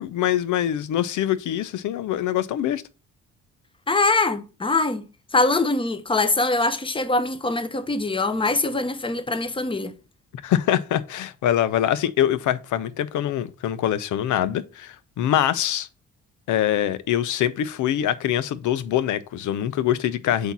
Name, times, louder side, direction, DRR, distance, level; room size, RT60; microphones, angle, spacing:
voice 1, 0.0-2.8 10.4-15.9 16.5-20.5, left 11 dB, 75° left, 0.7 m, -24 dB
voice 2, 3.9-9.9, left 3 dB, 15° left, 0.9 m, -23 dB
7.9 x 2.8 x 5.9 m
cardioid pair, 90°, 30 cm